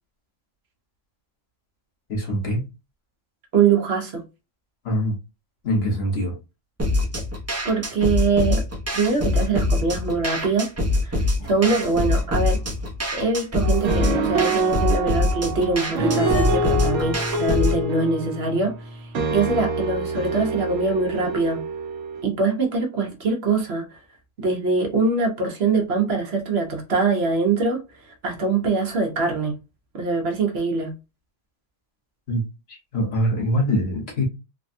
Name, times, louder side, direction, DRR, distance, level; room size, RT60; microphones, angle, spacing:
voice 1, 2.1-2.6 4.8-5.2 5.6-6.4 32.3-32.4 32.7-34.2, equal, 55° left, 1.2 m, -23 dB
voice 2, 3.5-4.2 7.6-8.6 8.9-10.7 11.0-12.6 13.1-21.6 22.2-24.0 24.4-29.6 29.9-30.9, right 4 dB, 60° right, 1.0 m, -23 dB
sound 1, 6.8-17.8, left 2 dB, 20° right, 0.5 m, -24 dB
sound 2, 11.4-13.1 13.4-13.5 16.1-16.5, left 3 dB, 80° left, 1.1 m, -34 dB
sound 3, 13.6-22.2, right 3 dB, 80° right, 1.0 m, -26 dB
3.4 x 2.2 x 2.5 m
omnidirectional pair, 1.3 m